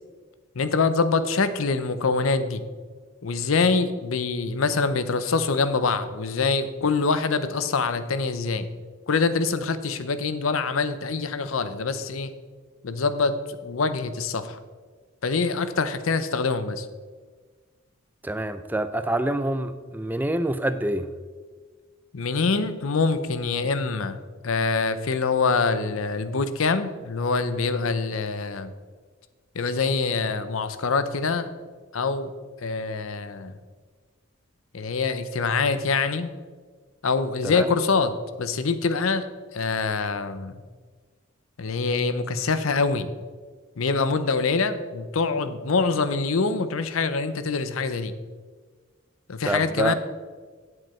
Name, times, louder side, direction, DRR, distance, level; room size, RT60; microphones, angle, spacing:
voice 1, 0.6-2.6 3.2-8.7 9.1-12.3 12.8-14.6 15.2-16.8 22.1-24.2 24.4-28.7 29.6-31.5 31.9-32.3 32.6-33.6 34.7-36.3 37.0-39.3 39.5-40.5 41.6-43.1 43.8-48.1 49.3-49.9, left 4 dB, 85° left, 11 dB, 0.7 m, -25 dB
voice 2, 18.2-21.1 37.4-37.7 49.4-49.9, right 1 dB, 10° right, 11 dB, 0.4 m, -26 dB
9.7 x 7.9 x 4.4 m, 1.5 s
head